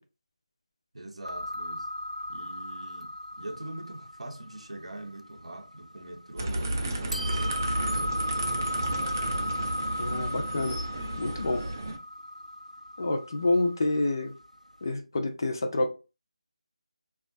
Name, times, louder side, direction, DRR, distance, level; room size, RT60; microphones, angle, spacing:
voice 1, 0.9-1.9 2.3-8.8, right 1 dB, 60° right, 0.7 m, -43 dB
sound 1, 1.2-6.4 7.1-14.6, left 1 dB, 90° right, 0.3 m, -36 dB
sound 2, 6.4-12.0, right 1 dB, 25° right, 0.4 m, -32 dB
voice 2, 10.0-10.8 11.2-11.6 13.0-14.3 14.8-15.9, left 2 dB, 35° left, 0.4 m, -28 dB
3.5 x 2.4 x 2.5 m
figure-of-eight pair, 160°, 4 cm